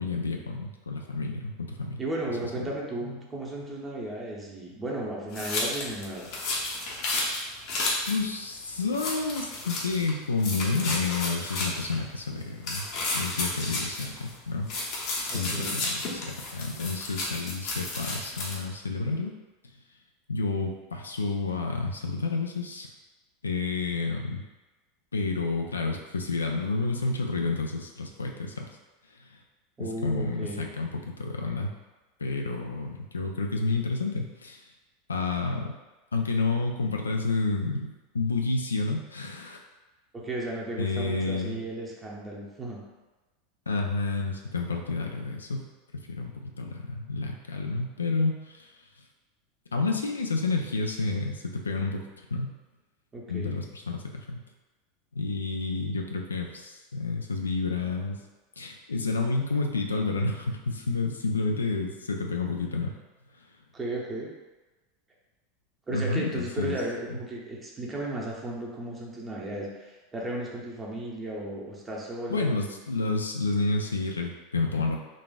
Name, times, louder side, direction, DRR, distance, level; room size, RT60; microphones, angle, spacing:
voice 1, 0.0-2.0 2.6-2.7 8.0-12.9 13.1-14.7 15.3-19.3 20.3-22.9 23.4-24.4 25.1-28.7 29.2-29.4 29.8-31.7 32.2-34.6 35.1-35.7 36.1-39.6 40.8-41.6 43.7-45.7 45.9-48.7 49.7-52.1 52.3-52.5 53.3-54.4 55.2-58.2 58.6-63.0 65.9-66.8 72.3-75.0, left 3 dB, 85° left, 2 dB, 0.3 m, -30 dB
voice 2, 2.0-6.3 15.3-15.8 29.8-30.6 40.1-42.8 53.1-53.5 63.7-64.3 65.9-72.5, right 1 dB, 20° right, -2 dB, 0.7 m, -35 dB
sound 1, 5.3-8.2 8.5-8.6 8.9-10.1 10.4-12.0 12.6-14.3 14.7-18.6, left 2 dB, 55° left, 0.8 m, -32 dB
3.9 x 2.4 x 2.3 m, 1.2 s
hypercardioid pair, 85°, 0 cm